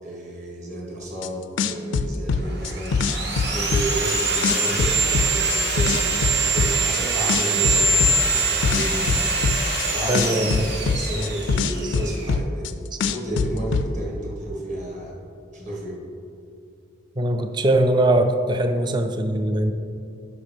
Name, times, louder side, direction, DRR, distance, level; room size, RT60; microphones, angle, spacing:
voice 1, 0.0-3.0 3.5-9.5 9.8-12.7 13.0-15.2 15.5-16.0, right 1 dB, 40° right, -3 dB, 1.7 m, -32 dB
sound 1, 1.2-1.3 1.6-4.1 4.4-7.0 7.3-9.8 10.1-12.7 13.0-13.9, left 5 dB, 65° left, 0.4 m, -23 dB
Sawing, 2.5-12.3, right 3 dB, 55° right, 1.2 m, -24 dB
voice 2, 10.1-10.7 17.2-19.7, right 1 dB, 20° right, 7 dB, 0.4 m, -21 dB
11.0 x 5.6 x 3.5 m, 2.6 s
head